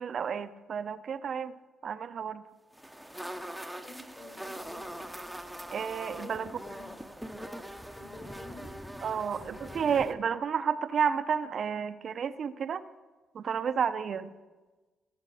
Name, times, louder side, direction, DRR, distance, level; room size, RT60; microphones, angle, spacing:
voice 1, 0.0-1.5 1.8-2.4 5.7-6.5 9.0-12.8 13.3-14.3, right 7 dB, 55° right, 12 dB, 0.6 m, -31 dB
sound 1, 2.7-10.1, equal, ahead, 0.8 m, -42 dB
voice 2, 3.8-5.0 6.2-6.9 7.9-8.7 9.2-9.9, left 3 dB, 45° left, 0 dB, 3.4 m, -49 dB
18.0 x 8.2 x 4.1 m, 1.2 s
cardioid pair, 90°, 0 cm